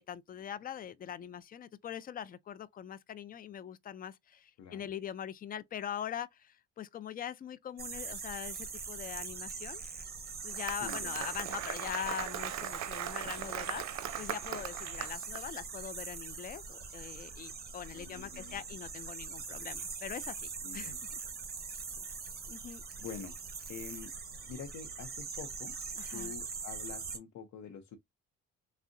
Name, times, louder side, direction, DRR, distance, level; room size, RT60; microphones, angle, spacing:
voice 1, 0.0-9.8 10.4-13.8 14.2-21.2 22.5-22.8 26.0-26.3, left 9 dB, 30° left, 0.3 m, -42 dB
sound 1, 7.8-27.2, right 5 dB, 30° right, 0.9 m, -42 dB
Applause, 10.3-15.4, right 11 dB, 70° right, 0.6 m, -39 dB
voice 2, 10.8-11.2 13.0-13.3 15.0-15.1 17.9-18.6 20.6-21.0 23.0-23.3 23.7-24.1 24.4-25.7 26.1-28.0, left 7 dB, 70° left, 0.6 m, -46 dB
3.5 x 2.1 x 2.5 m
cardioid pair, 90°, 30 cm